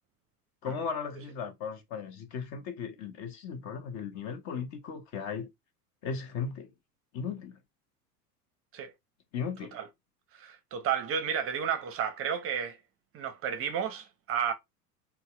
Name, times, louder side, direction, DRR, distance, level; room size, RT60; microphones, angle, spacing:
voice 1, 0.6-5.5 6.0-6.7 7.1-7.6 9.3-9.8, left 6 dB, 35° left, 0.6 m, -36 dB
voice 2, 10.3-12.8 13.1-14.5, right 8 dB, 30° right, 0.6 m, -32 dB
3.9 x 2.1 x 2.3 m
hypercardioid pair, 85°, 47 cm